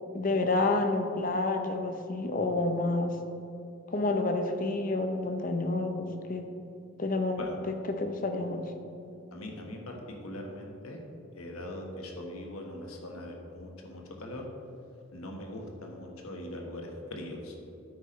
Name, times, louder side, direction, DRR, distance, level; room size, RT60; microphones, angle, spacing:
voice 1, 0.1-3.2 3.9-6.5 7.0-8.7, left 2 dB, 40° left, 6 dB, 0.7 m, -29 dB
voice 2, 9.3-11.0 11.3-14.4 15.1-17.6, left 1 dB, 85° left, 1 dB, 1.4 m, -41 dB
9.4 x 8.5 x 3.2 m, 2.8 s
head